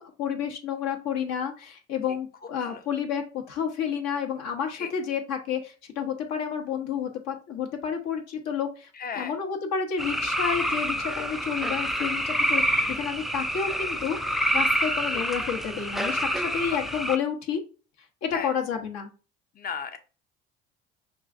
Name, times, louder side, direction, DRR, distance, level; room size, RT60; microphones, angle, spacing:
voice 1, 0.0-14.2 14.5-17.6 18.2-19.1, left 7 dB, 60° left, 3 dB, 0.8 m, -30 dB
voice 2, 9.0-9.3 12.6-13.0 15.1-15.2 18.3-18.5 19.6-20.0, left 6 dB, 30° left, 8 dB, 0.7 m, -35 dB
sound 1, 10.0-17.2, equal, ahead, 0.3 m, -27 dB
5.3 x 2.5 x 2.4 m, 0.35 s
hypercardioid pair, 60°, 30 cm